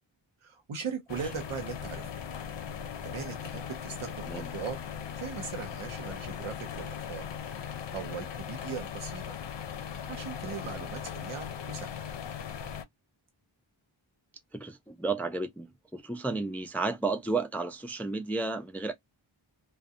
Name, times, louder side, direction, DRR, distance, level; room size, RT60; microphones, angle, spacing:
voice 1, 0.4-2.1 3.0-4.8 5.2-7.2 7.9-9.4 10.1-11.9, right 6 dB, 90° right, 0.7 m, -39 dB
sound 1, 1.1-12.8, left 8 dB, 60° left, 0.5 m, -39 dB
voice 2, 14.5-18.9, right 3 dB, 5° left, 0.3 m, -32 dB
2.6 x 2.1 x 2.3 m
wide cardioid pair, 55°, 49 cm